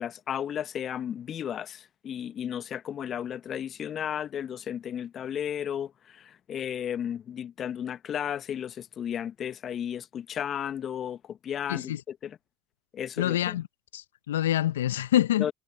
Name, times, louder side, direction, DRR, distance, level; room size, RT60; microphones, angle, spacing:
voice 1, 0.0-12.4 12.9-13.6 15.4-15.5, left 9 dB, 45° left, 1.3 m, -34 dB
voice 2, 11.7-12.0 13.2-13.6 13.9-15.5, left 12 dB, 80° left, 0.9 m, -26 dB
hypercardioid pair, 65°, 0 cm